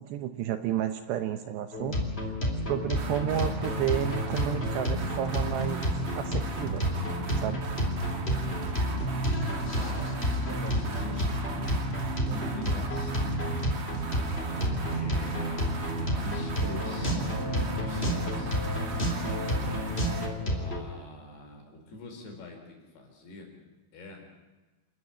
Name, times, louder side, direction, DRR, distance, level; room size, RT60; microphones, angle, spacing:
voice 1, 0.0-2.0 2.7-6.8 7.4-7.6, right 11 dB, 75° right, 8 dB, 2.7 m, -31 dB
sound 1, 1.7-20.8, equal, 15° left, 2.8 m, -31 dB
sound 2, 2.9-20.3, right 2 dB, 40° right, 2.6 m, -35 dB
voice 2, 8.3-9.1 9.8-11.9 12.2-13.4 14.3-18.9 19.2-19.4 20.5-23.5 23.9-24.2, left 2 dB, 55° left, 2 dB, 6.6 m, -44 dB
28.5 x 13.5 x 10.0 m, 1.2 s
omnidirectional pair, 5.6 m